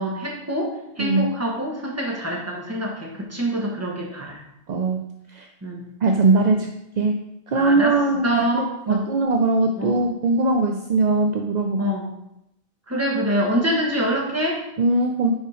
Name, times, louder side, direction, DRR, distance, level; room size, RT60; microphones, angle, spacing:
voice 1, 0.0-4.4 5.6-5.8 7.5-7.9 8.2-9.1 9.8-10.0 11.8-12.1 12.9-14.6, equal, 15° right, -2 dB, 1.3 m, -25 dB
voice 2, 4.7-5.0 5.3-5.5 6.0-6.7 7.0-11.8 14.8-15.3, right 3 dB, 55° right, 3 dB, 0.5 m, -21 dB
5.3 x 5.0 x 4.9 m, 0.83 s
omnidirectional pair, 1.2 m